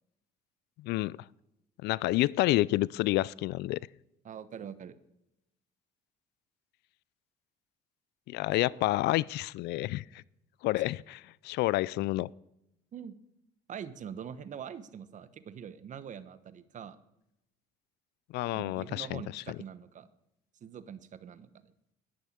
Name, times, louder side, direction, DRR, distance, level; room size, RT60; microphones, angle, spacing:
voice 1, 0.8-1.2 1.8-3.8 8.3-10.0 10.6-12.3 18.3-19.6, left 18 dB, 80° left, 23 dB, 0.4 m, -29 dB
voice 2, 4.2-5.0 8.7-8.9 12.9-13.1 13.7-17.0 18.5-20.1 20.6-21.7, right 8 dB, 50° right, 14 dB, 1.1 m, -44 dB
11.0 x 10.5 x 8.6 m, 0.85 s
cardioid pair, 110°, 17 cm